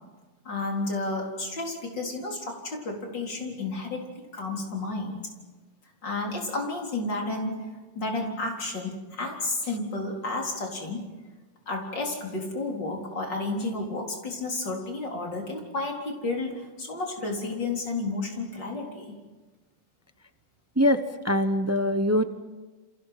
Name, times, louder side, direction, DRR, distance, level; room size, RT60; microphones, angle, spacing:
voice 1, 0.4-4.0 4.3-5.2 6.0-11.1 11.7-19.2, left 2 dB, 65° left, 0 dB, 4.6 m, -31 dB
voice 2, 20.8-22.2, equal, 15° right, 9 dB, 0.5 m, -23 dB
29.0 x 27.0 x 5.9 m, 1.3 s
omnidirectional pair, 2.1 m